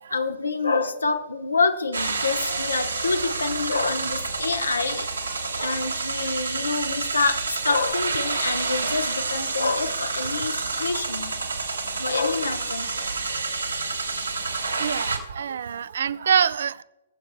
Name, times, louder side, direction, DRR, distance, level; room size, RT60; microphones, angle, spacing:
voice 1, 0.1-11.3 12.0-12.9, left 4 dB, 70° left, 8 dB, 0.9 m, -27 dB
sound 1, 1.9-15.2, right 3 dB, 80° right, 1.9 m, -29 dB
voice 2, 10.4-11.0 11.4-11.8 14.8-16.8, right 8 dB, 55° right, 19 dB, 0.4 m, -27 dB
21.5 x 7.7 x 2.3 m, 0.99 s
figure-of-eight pair, 120°, 0 cm